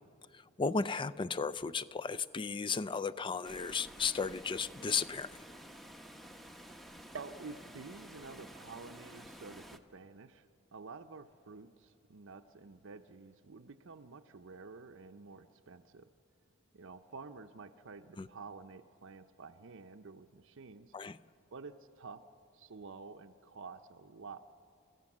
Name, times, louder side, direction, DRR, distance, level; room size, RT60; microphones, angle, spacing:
voice 1, 0.3-5.3 18.2-18.3 20.9-21.2, left 5 dB, 25° left, 14 dB, 0.4 m, -35 dB
Water, 3.4-9.8, equal, ahead, 0.8 m, -51 dB
voice 2, 7.1-10.5 10.7-16.1 16.7-20.9 21.5-22.2 22.5-24.4, right 4 dB, 65° right, 6 dB, 0.7 m, -50 dB
29.5 x 15.0 x 7.3 m, 2.6 s
head